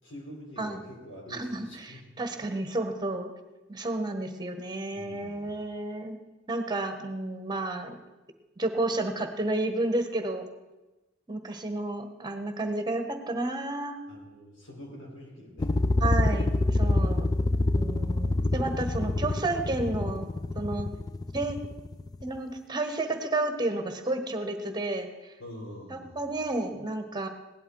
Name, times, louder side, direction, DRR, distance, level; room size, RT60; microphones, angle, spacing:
voice 1, 0.0-2.2 4.9-5.5 14.1-15.7 16.8-17.4 18.6-19.1 25.4-26.3, equal, 70° left, -3 dB, 4.4 m, -46 dB
voice 2, 1.3-3.3 3.7-6.2 6.5-8.0 8.6-10.4 11.3-14.0 16.0-17.2 17.7-20.3 20.5-20.9 21.3-21.6 22.2-25.3 25.9-27.3, right 2 dB, 20° right, 6 dB, 1.3 m, -31 dB
sound 1, 15.6-22.3, left 2 dB, 20° left, 0.4 m, -27 dB
17.0 x 11.0 x 4.7 m, 1.1 s
head